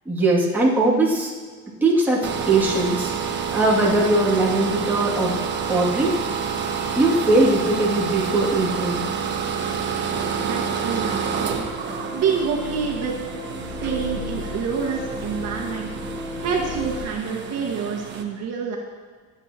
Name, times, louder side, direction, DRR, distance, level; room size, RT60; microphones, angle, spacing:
voice 1, 0.1-1.3 1.8-3.1 3.5-5.4 5.7-6.2 6.9-9.1, right 2 dB, 5° right, -7 dB, 2.5 m, -20 dB
sound 1, 2.2-18.2, right 6 dB, 35° right, 1.3 m, -29 dB
sound 2, 10.1-17.0, left 2 dB, 20° left, 3.4 m, -34 dB
voice 2, 10.4-11.6 12.1-13.2 13.7-15.9 16.4-18.8, right 6 dB, 50° right, -1 dB, 1.7 m, -27 dB
24.5 x 8.6 x 3.0 m, 1.5 s
cardioid pair, 140°, 32 cm